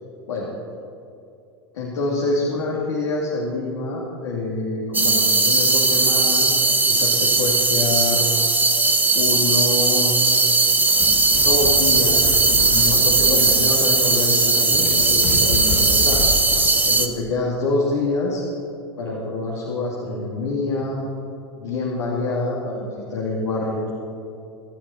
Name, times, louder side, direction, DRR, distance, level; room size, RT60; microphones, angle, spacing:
voice 1, 1.7-8.2 9.1-10.4 11.2-16.2 16.8-18.4 19.0-21.0 21.6-23.9, left 2 dB, 85° left, -4 dB, 2.5 m, -26 dB
sound 1, 4.9-17.1, right 3 dB, 15° right, 1.2 m, -18 dB
sound 2, 10.7-16.7, left 3 dB, 65° left, 3.9 m, -30 dB
25.5 x 8.7 x 4.3 m, 2.6 s
hypercardioid pair, 95°, 14 cm